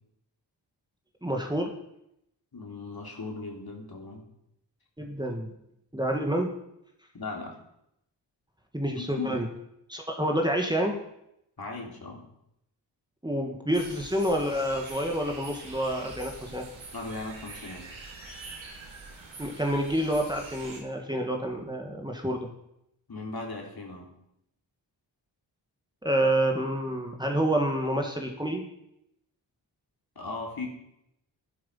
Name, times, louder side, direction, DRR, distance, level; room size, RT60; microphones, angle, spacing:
voice 1, 1.2-1.7 5.0-5.5 5.9-6.5 8.7-9.5 9.9-11.0 13.2-16.6 19.4-22.5 26.0-28.7, right 1 dB, 10° right, 2 dB, 1.9 m, -28 dB
voice 2, 2.5-4.3 7.1-7.6 9.0-9.4 11.6-12.3 16.9-17.9 23.1-24.1 30.1-30.7, left 3 dB, 50° left, 0 dB, 3.4 m, -37 dB
sound 1, 13.7-20.8, right 3 dB, 80° right, 3.2 m, -45 dB
11.5 x 11.5 x 5.6 m, 0.80 s
cardioid pair, 65°, 46 cm